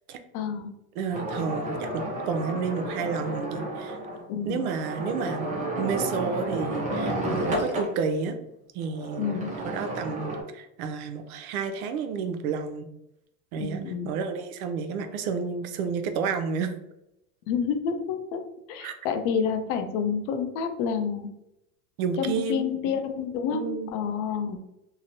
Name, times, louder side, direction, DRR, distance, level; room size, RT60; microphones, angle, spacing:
voice 1, 0.3-0.7 4.3-4.7 9.2-9.5 13.6-14.1 17.5-18.4 18.7-21.3 22.2-23.6 23.9-24.6, left 7 dB, 55° left, 6 dB, 0.5 m, -29 dB
voice 2, 1.0-4.0 4.5-8.4 8.7-12.9 13.5-16.7 18.8-19.0 22.0-23.0 23.5-23.9, right 5 dB, 75° right, 8 dB, 0.6 m, -31 dB
sound 1, 1.1-7.9 8.8-10.4, right 1 dB, 20° right, 0.4 m, -31 dB
2.9 x 2.0 x 2.6 m, 0.86 s
supercardioid pair, 120°, 45 cm